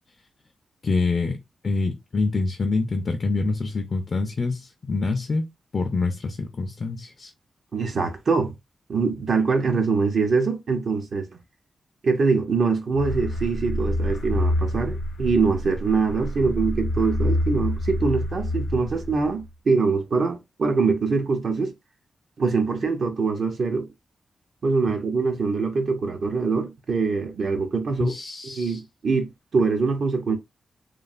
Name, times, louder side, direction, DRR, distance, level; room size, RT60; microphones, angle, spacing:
voice 1, 0.8-5.4 5.7-7.3 27.9-28.8, left 3 dB, 40° left, 0.4 m, -26 dB
voice 2, 7.7-8.5 8.9-11.3 12.0-21.7 22.4-23.9 24.6-28.1 28.6-30.4, right 4 dB, 55° right, 0.6 m, -23 dB
sound 1, 12.9-19.5, left 1 dB, 85° left, 0.6 m, -27 dB
3.1 x 2.3 x 2.4 m
wide cardioid pair, 135°, 0 cm